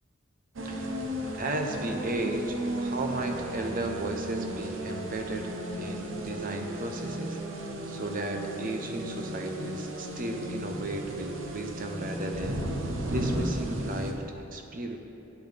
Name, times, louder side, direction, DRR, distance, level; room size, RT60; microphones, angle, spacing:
voice 1, 0.6-1.1 1.3-12.7 13.1-15.0, right 1 dB, 45° right, 4 dB, 0.8 m, -35 dB
sound 1, 0.6-14.1, right 1 dB, 85° right, 0.9 m, -34 dB
12.0 x 8.6 x 3.4 m, 3.0 s
head